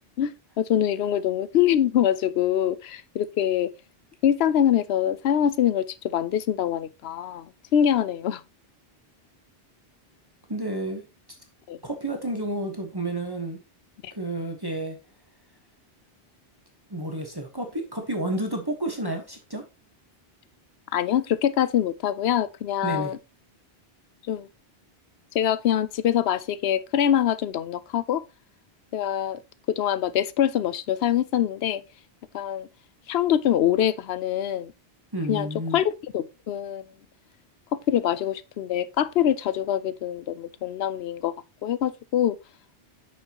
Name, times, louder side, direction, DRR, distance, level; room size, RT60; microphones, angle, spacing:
voice 1, 0.2-3.7 4.2-8.4 11.7-11.8 14.0-14.1 20.9-23.2 24.3-24.5 25.3-28.2 28.9-29.4 29.7-31.8 32.3-32.7 33.1-34.7 35.3-36.8 37.7-41.3 41.6-42.4, left 10 dB, 80° left, 0.9 m, -24 dB
voice 2, 10.5-11.0 11.8-13.6 14.1-15.0 16.9-19.6 22.8-23.1 35.1-35.8, right 1 dB, 25° right, 1.3 m, -30 dB
9.0 x 6.4 x 2.9 m
omnidirectional pair, 1.0 m